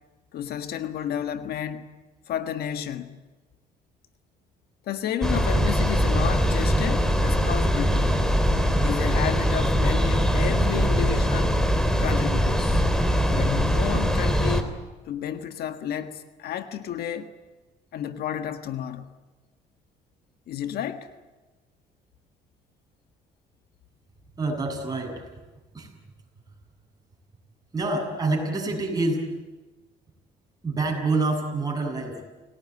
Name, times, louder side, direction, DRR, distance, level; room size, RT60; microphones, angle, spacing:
voice 1, 0.3-2.0 2.3-3.2 4.9-8.2 8.8-11.6 12.0-12.8 13.3-17.3 17.9-19.1 20.5-21.1, left 10 dB, 70° left, 1.6 m, -31 dB
sound 1, 5.2-14.6, equal, 5° left, 3.1 m, -22 dB
voice 2, 24.4-25.3 25.7-25.9 27.7-29.3 30.6-32.2, right 3 dB, 20° right, 7.3 m, -27 dB
28.5 x 18.5 x 9.7 m
cardioid pair, 110°, 17 cm